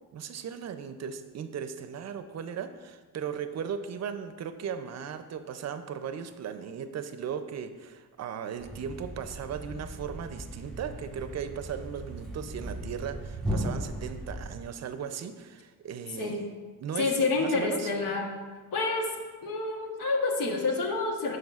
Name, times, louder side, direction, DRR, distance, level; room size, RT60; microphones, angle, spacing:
voice 1, 0.1-16.4 16.8-17.9, right 7 dB, 55° right, 10 dB, 0.5 m, -37 dB
Thump thud, 8.6-14.8, equal, ahead, 1.3 m, -37 dB
voice 2, 17.0-18.3 18.7-19.1 19.4-21.4, left 3 dB, 85° left, 2 dB, 1.1 m, -28 dB
12.0 x 4.7 x 2.4 m, 1.4 s
cardioid pair, 110°, 33 cm